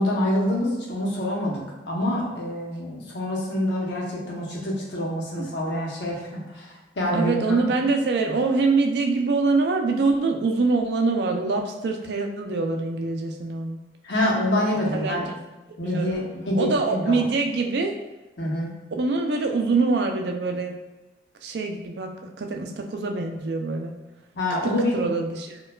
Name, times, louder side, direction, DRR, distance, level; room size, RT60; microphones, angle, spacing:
voice 1, 0.0-6.7 7.0-7.7 14.0-15.3 15.8-17.2 18.4-18.8 24.3-24.9, left 1 dB, 80° left, -3 dB, 0.8 m, -26 dB
voice 2, 7.1-13.8 14.9-15.3 15.8-16.2 16.6-17.9 19.0-20.7 21.4-23.9 24.6-25.6, right 3 dB, 70° right, 3 dB, 0.4 m, -24 dB
4.3 x 2.3 x 2.2 m, 1.1 s
head